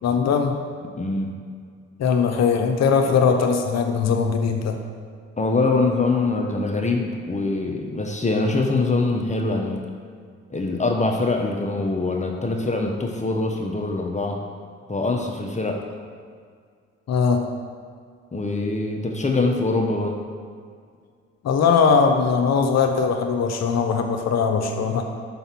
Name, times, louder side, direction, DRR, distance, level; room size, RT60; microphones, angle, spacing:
voice 1, 0.0-0.6 2.0-4.8 17.1-17.5 21.4-25.1, left 5 dB, 55° left, 4 dB, 0.9 m, -20 dB
voice 2, 1.0-1.3 3.1-3.2 5.4-9.8 10.5-14.4 14.9-15.8 18.3-20.2, left 3 dB, 20° left, 1 dB, 1.0 m, -23 dB
6.0 x 4.1 x 5.8 m, 2.1 s
hypercardioid pair, 50°, 32 cm